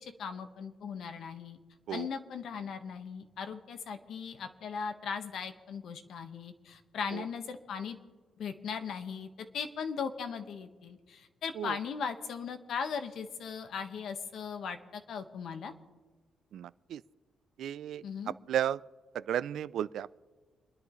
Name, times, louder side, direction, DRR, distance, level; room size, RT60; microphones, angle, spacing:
voice 1, 0.0-1.6 1.9-8.0 8.4-15.7 18.0-18.3, left 6 dB, 70° left, 7 dB, 1.3 m, -38 dB
voice 2, 16.5-17.0 17.6-18.0 18.5-18.8 19.3-20.1, right 10 dB, 75° right, 18 dB, 0.3 m, -33 dB
29.0 x 10.5 x 3.1 m, 1.4 s
cardioid pair, 105°, 0 cm